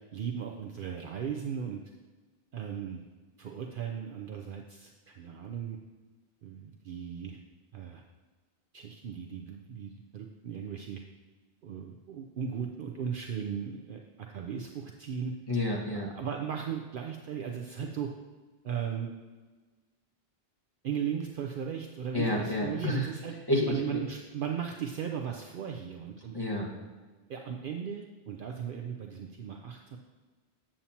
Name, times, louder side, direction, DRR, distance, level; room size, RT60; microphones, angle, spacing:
voice 1, 0.1-1.8 2.5-3.1 3.4-5.8 6.4-7.4 7.7-8.0 8.7-11.0 11.6-15.3 15.9-18.1 18.6-19.1 20.8-23.3 23.7-26.3 27.3-30.0, right 8 dB, 60° right, 2 dB, 0.7 m, -37 dB
voice 2, 15.5-16.1 22.1-23.1 23.5-24.0 26.3-26.7, left 1 dB, 25° left, -3 dB, 1.4 m, -29 dB
8.7 x 7.3 x 2.8 m, 1.3 s
omnidirectional pair, 1.1 m